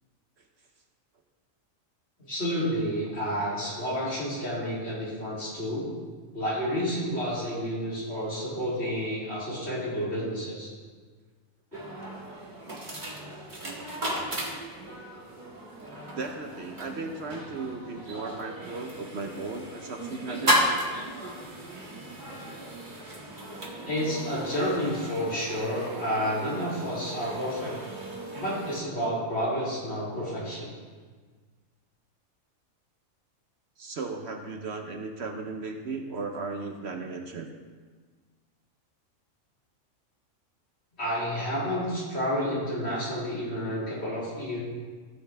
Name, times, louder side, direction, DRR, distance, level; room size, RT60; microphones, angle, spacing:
voice 1, 2.3-5.9 6.3-10.7 11.7-11.8 22.2-22.4 23.9-27.8 28.3-30.7 41.0-44.6, equal, 50° left, -8 dB, 3.7 m, -30 dB
sound 1, 11.7-28.8, equal, 35° right, 1.7 m, -34 dB
voice 2, 16.1-20.6 22.4-22.8 24.0-24.5 25.7-26.1 28.2-28.3 33.8-37.5, right 3 dB, 55° right, 4 dB, 1.1 m, -36 dB
16.5 x 7.7 x 3.5 m, 1.5 s
omnidirectional pair, 1.4 m